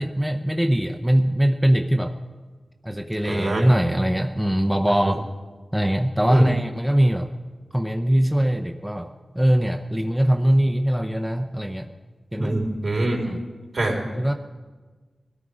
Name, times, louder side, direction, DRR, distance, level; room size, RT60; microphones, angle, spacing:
voice 1, 0.0-2.2 2.8-5.3 5.7-7.3 7.7-11.9 12.3-12.5 13.3-13.4 14.0-14.3, right 1 dB, 5° right, 5 dB, 0.7 m, -22 dB
voice 2, 3.2-3.6 6.3-6.5 12.4-13.3 13.7-14.0, right 1 dB, 60° right, 0 dB, 3.8 m, -23 dB
21.0 x 13.5 x 5.0 m, 1.4 s
wide cardioid pair, 95°, 0 cm